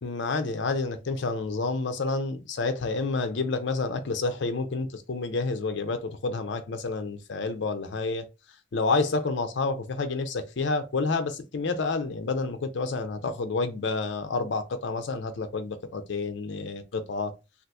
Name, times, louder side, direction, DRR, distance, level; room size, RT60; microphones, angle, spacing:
voice 1, 0.0-8.3 8.7-17.3, left 3 dB, 65° left, 0.5 m, -29 dB
2.7 x 2.4 x 3.4 m
head